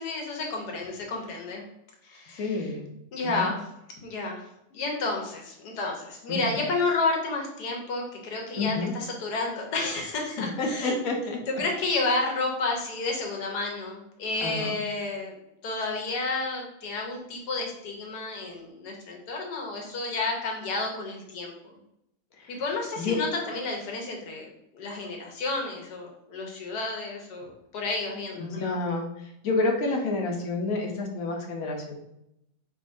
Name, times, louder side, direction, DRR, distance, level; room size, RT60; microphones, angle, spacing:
voice 1, 0.0-1.6 2.1-2.6 3.1-3.6 4.0-4.4 4.7-11.0 11.6-15.3 15.6-21.5 22.5-24.5 24.7-28.6, left 3 dB, 90° left, 0 dB, 1.5 m, -31 dB
voice 2, 2.3-2.9 3.3-3.5 6.3-6.6 8.6-8.9 10.4-11.4 14.4-14.8 22.4-22.6 23.0-23.2 28.4-32.0, left 3 dB, 65° left, 2 dB, 1.1 m, -29 dB
4.3 x 3.7 x 2.6 m, 0.82 s
omnidirectional pair, 1.7 m